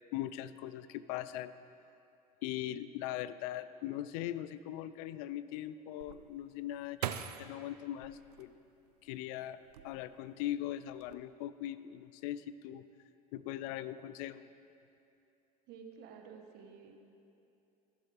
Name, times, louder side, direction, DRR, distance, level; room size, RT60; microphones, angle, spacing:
voice 1, 0.1-1.5 2.4-8.5 9.0-12.8 13.3-14.5, left 13 dB, 70° left, 15 dB, 0.4 m, -40 dB
sound 1, 6.0-9.1 9.6-10.4 10.7-11.1, right 10 dB, 90° right, 0.4 m, -43 dB
voice 2, 15.7-17.0, right 6 dB, 60° right, 3 dB, 1.2 m, -51 dB
15.0 x 7.1 x 3.4 m, 2.7 s
hypercardioid pair, 75°, 19 cm